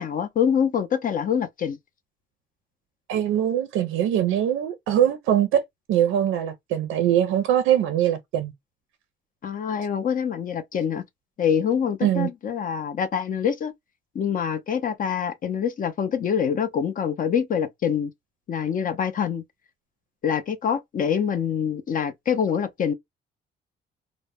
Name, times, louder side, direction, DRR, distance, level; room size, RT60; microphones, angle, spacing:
voice 1, 0.0-1.8 9.4-11.0 11.4-13.7 14.1-18.1 18.5-19.4 20.2-22.9, left 7 dB, 45° left, 0.4 m, -25 dB
voice 2, 3.1-5.6 5.9-8.5 12.0-12.3, right 10 dB, 85° right, 0.4 m, -22 dB
2.1 x 2.0 x 3.3 m
cardioid pair, 90°, 20 cm